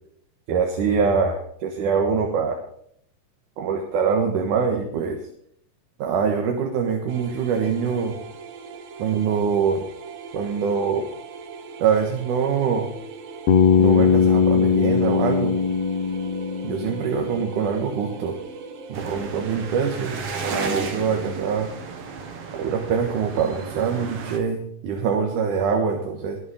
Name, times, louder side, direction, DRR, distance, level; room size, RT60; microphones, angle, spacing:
voice 1, 0.5-2.6 3.6-5.2 6.0-8.2 9.0-9.8 10.3-11.1 11.8-12.9 13.8-15.5 16.6-18.4 18.9-21.7 22.5-26.4, right 6 dB, 70° right, 3 dB, 2.9 m, -24 dB
sound 1, 7.1-20.1, right 4 dB, 90° right, 3.3 m, -40 dB
Bass guitar, 13.5-17.5, left 6 dB, 65° left, 1.7 m, -20 dB
sound 2, 18.9-24.4, right 4 dB, 50° right, 2.3 m, -32 dB
21.0 x 8.8 x 3.8 m, 0.66 s
omnidirectional pair, 3.9 m